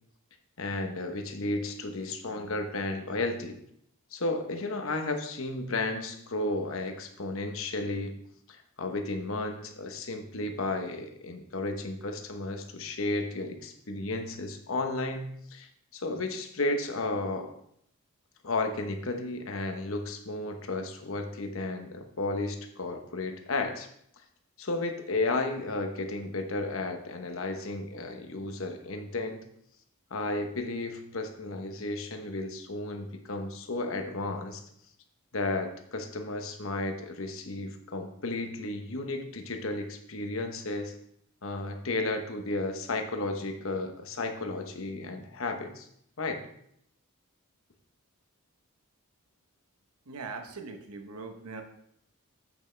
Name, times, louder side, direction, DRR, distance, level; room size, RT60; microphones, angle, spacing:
voice 1, 0.6-3.6 4.1-8.2 8.5-15.7 15.9-17.5 18.4-23.9 24.6-29.4 30.1-34.6 35.3-40.9 41.4-45.9 46.2-46.5, left 2 dB, 65° left, 5 dB, 1.0 m, -33 dB
voice 2, 50.1-51.6, right 4 dB, 85° right, 6 dB, 0.9 m, -41 dB
8.2 x 7.0 x 3.3 m, 0.71 s
head